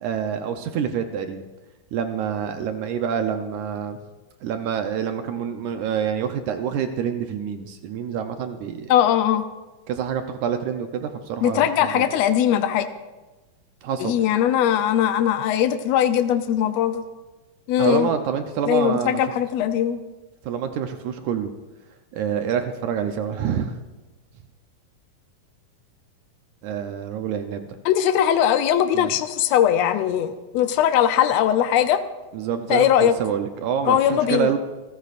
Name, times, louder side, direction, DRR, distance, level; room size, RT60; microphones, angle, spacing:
voice 1, 0.0-1.5 1.9-4.0 4.4-8.9 9.9-11.7 11.9-12.0 13.8-14.1 17.8-19.2 20.4-21.5 22.1-23.7 26.6-27.8 28.9-29.1 32.3-34.6, right 8 dB, 75° right, 7 dB, 2.0 m, -27 dB
voice 2, 8.9-9.4 11.4-12.9 14.0-17.0 17.7-18.1 18.7-20.0 27.8-32.0 32.7-33.1 33.9-34.5, left 10 dB, 85° left, 9 dB, 1.5 m, -20 dB
27.5 x 15.0 x 2.5 m, 1.1 s
omnidirectional pair, 3.8 m